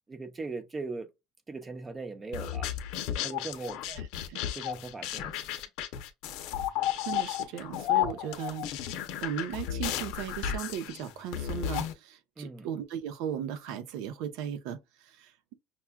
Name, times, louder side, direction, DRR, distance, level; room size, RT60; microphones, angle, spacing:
voice 1, 0.1-1.1 1.5-2.7 3.2-3.8 4.5-5.6 12.4-12.7, right 3 dB, 15° right, 0.7 m, -39 dB
sound 1, 2.3-11.9, left 11 dB, 70° left, 0.7 m, -33 dB
voice 2, 3.9-4.4 7.0-8.7 9.2-15.5, right 9 dB, 70° right, 0.7 m, -37 dB
5.8 x 2.3 x 2.3 m
cardioid pair, 140°, 0 cm